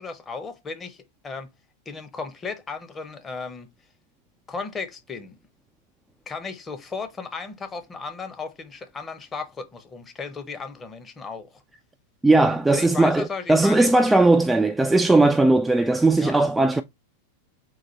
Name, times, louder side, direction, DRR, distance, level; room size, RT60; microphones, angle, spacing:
voice 1, 0.0-1.5 1.9-3.7 4.5-5.3 6.3-11.6 12.7-13.9 16.2-16.3, left 4 dB, 20° left, 0.8 m, -35 dB
voice 2, 12.2-16.8, right 2 dB, 5° right, 0.3 m, -18 dB
3.9 x 2.5 x 4.3 m
figure-of-eight pair, 90°, 0 cm